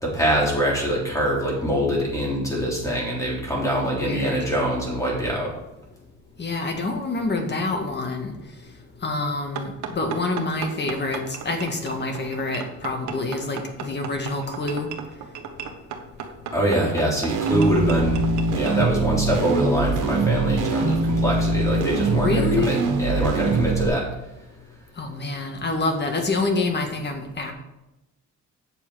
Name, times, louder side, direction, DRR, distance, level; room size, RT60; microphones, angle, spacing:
voice 1, 0.0-5.5 16.5-18.2 18.5-24.0, equal, 10° left, -4 dB, 3.5 m, -24 dB
voice 2, 3.9-4.5 6.4-8.3 9.0-14.9 22.1-22.8 25.0-27.5, left 3 dB, 35° left, 4 dB, 1.8 m, -27 dB
sound 1, 9.5-18.8, right 7 dB, 70° right, 1.3 m, -35 dB
sound 2, 17.3-23.9, right 3 dB, 85° right, 1.6 m, -23 dB
8.8 x 6.8 x 4.9 m, 0.93 s
cardioid pair, 130°, 31 cm